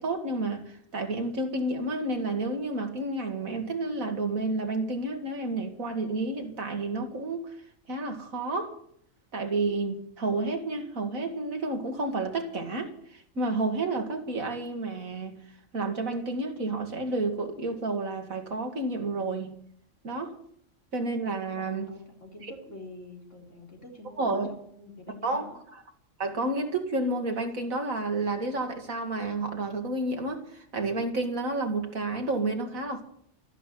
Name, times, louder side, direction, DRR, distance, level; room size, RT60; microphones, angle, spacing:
voice 1, 0.0-7.6 7.9-8.8 9.3-15.4 15.7-19.6 20.0-20.4 20.9-21.9 22.4-22.5 24.2-24.5 25.2-25.5 26.2-33.0, right 2 dB, 90° right, 2.7 m, -30 dB
voice 2, 21.5-25.6, left 2 dB, 65° left, 4.2 m, -46 dB
14.5 x 11.0 x 9.4 m
omnidirectional pair, 1.4 m